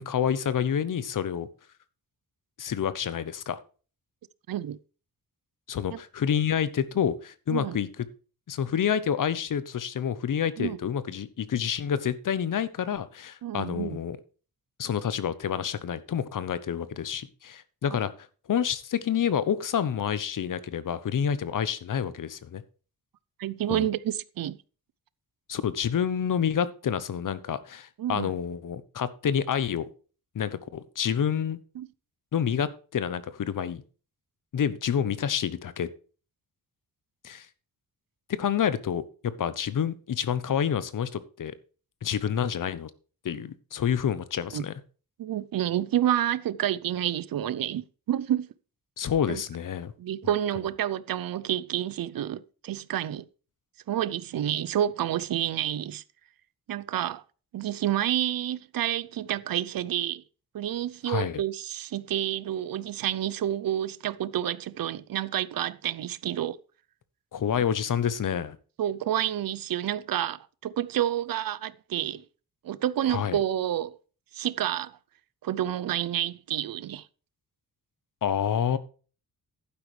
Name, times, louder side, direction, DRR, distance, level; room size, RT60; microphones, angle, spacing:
voice 1, 0.0-1.5 2.6-3.6 5.7-8.0 8.5-14.2 14.8-18.1 18.5-22.6 23.7-23.9 25.5-29.9 30.3-31.6 32.3-33.8 34.5-35.9 37.2-37.5 38.4-41.5 42.0-42.9 43.2-44.7 49.0-49.9 61.1-61.4 67.3-68.6 73.1-73.4 78.2-78.8, left 8 dB, 60° left, 1.0 m, -28 dB
voice 2, 4.5-4.8 5.9-6.0 7.5-7.8 10.6-10.8 13.4-14.0 17.9-18.0 23.4-24.6 28.0-28.3 31.8-31.9 44.5-44.6 45.2-48.5 49.3-49.4 50.0-53.2 53.9-56.0 56.7-57.2 57.5-60.2 60.5-66.6 68.8-72.2 72.6-74.0 74.3-75.0 75.4-77.1, right 11 dB, 70° right, 0.6 m, -29 dB
11.5 x 9.8 x 3.3 m
wide cardioid pair, 175°, 37 cm